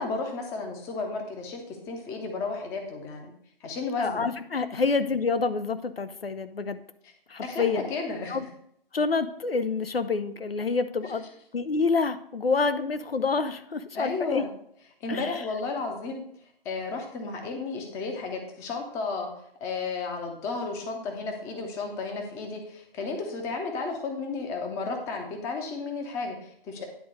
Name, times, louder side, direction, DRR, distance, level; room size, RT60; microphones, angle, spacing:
voice 1, 0.0-3.3 3.6-4.3 4.7-4.8 7.4-8.4 13.9-14.5 15.0-16.2 16.6-19.3 19.6-26.8, left 3 dB, 10° left, 3 dB, 0.7 m, -33 dB
voice 2, 4.0-6.8 7.3-7.8 8.3-8.5 8.9-11.2 11.5-14.4 15.1-15.3, left 4 dB, 80° left, 11 dB, 0.8 m, -27 dB
10.0 x 3.7 x 6.4 m, 0.70 s
figure-of-eight pair, 135°, 29 cm